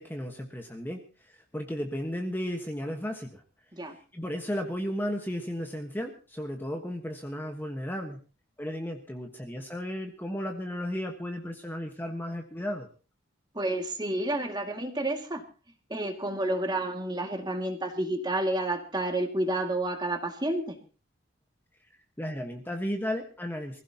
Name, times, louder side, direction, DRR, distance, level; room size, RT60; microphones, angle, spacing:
voice 1, 0.0-3.4 3.8-8.2 8.6-12.9 22.2-23.8, equal, 10° left, 3 dB, 1.4 m, -34 dB
voice 2, 13.5-15.4 15.9-20.8, right 1 dB, 20° right, 4 dB, 2.2 m, -30 dB
24.5 x 16.0 x 2.9 m, 0.34 s
head